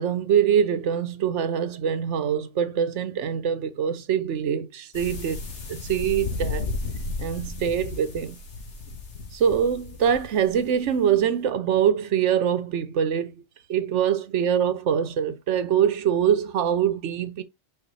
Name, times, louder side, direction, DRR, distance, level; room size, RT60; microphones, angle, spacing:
voice 1, 0.0-5.4 5.7-6.7 7.2-8.4 9.3-13.3 13.7-17.4, right 8 dB, 80° right, 1.1 m, -24 dB
sound 1, 4.9-10.8, left 3 dB, 80° left, 1.7 m, -34 dB
5.7 x 4.1 x 4.0 m
omnidirectional pair, 1.2 m